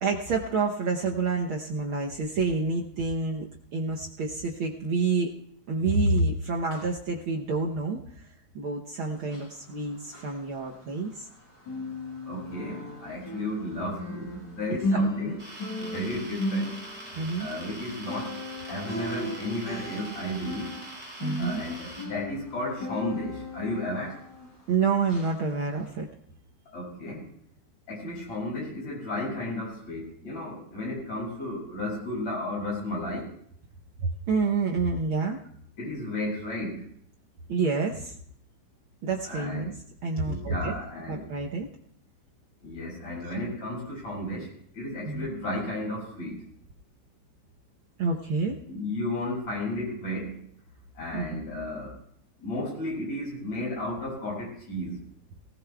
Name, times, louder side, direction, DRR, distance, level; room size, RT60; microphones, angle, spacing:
voice 1, 0.0-5.3 5.7-8.0 8.5-11.3 14.9-15.3 17.2-17.5 21.2-21.6 24.7-26.1 34.0-35.4 37.5-38.1 39.0-39.7 40.0-40.7 41.1-41.7 45.0-45.3 48.0-48.6 51.1-51.4, right 4 dB, 75° right, 0 dB, 1.2 m, -28 dB
sound 1, 9.2-11.3 11.6-24.7 25.1-25.3 25.8-25.9, left 1 dB, 85° left, 7.1 m, -36 dB
voice 2, 12.2-15.4 15.8-16.7 17.4-18.3 18.7-20.7 21.4-24.2 26.7-27.3 27.9-33.3 35.8-36.9 39.3-39.7 40.2-41.3 42.6-46.4 48.7-50.5 51.0-51.9 52.4-55.0, left 1 dB, 65° left, -4 dB, 7.5 m, -33 dB
sound 2, 15.4-22.1, right 1 dB, 20° right, 5.8 m, -43 dB
19.0 x 18.0 x 2.3 m, 0.66 s
omnidirectional pair, 3.4 m